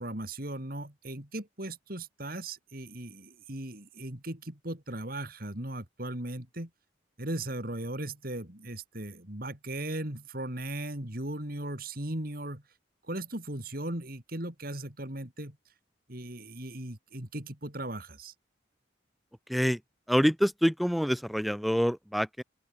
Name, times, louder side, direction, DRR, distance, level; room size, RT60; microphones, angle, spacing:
voice 1, 0.0-6.7 7.2-12.6 13.1-15.6 16.1-18.3, right 1 dB, 50° right, 3.6 m, -37 dB
voice 2, 19.5-19.8 20.1-22.4, equal, ahead, 3.9 m, -26 dB
open air
head